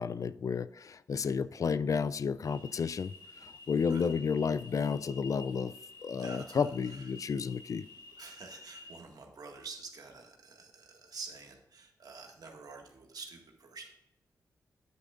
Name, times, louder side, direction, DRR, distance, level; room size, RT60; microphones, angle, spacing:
voice 1, 0.0-3.1 3.4-5.7 6.0-7.9, left 6 dB, 50° left, 0.4 m, -31 dB
sound 1, 2.4-9.0, left 3 dB, 75° left, 2.2 m, -51 dB
voice 2, 6.2-7.2 8.2-13.9, right 4 dB, 65° right, 1.9 m, -48 dB
9.4 x 8.3 x 2.5 m
cardioid pair, 60°, 7 cm